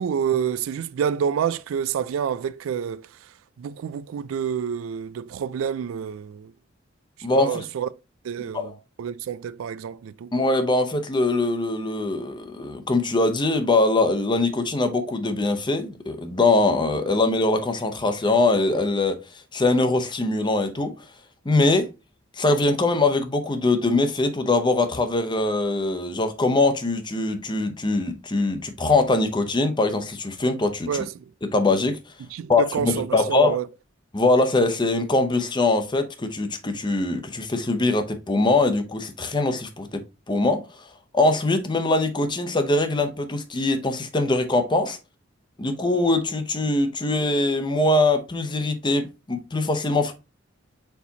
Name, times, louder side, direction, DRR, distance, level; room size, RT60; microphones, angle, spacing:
voice 1, 0.0-3.1 3.6-6.5 7.3-7.9 8.2-8.7 9.0-10.3 30.9-31.2 32.3-33.7, right 8 dB, 85° right, 0.3 m, -28 dB
voice 2, 7.2-7.6 8.5-8.7 10.3-19.2 19.5-20.9 21.4-21.9 22.4-31.0 31.5-32.0 32.5-33.6 34.1-40.6 41.1-45.0 45.6-50.1, left 2 dB, 25° left, 0.7 m, -22 dB
4.5 x 4.1 x 2.8 m
head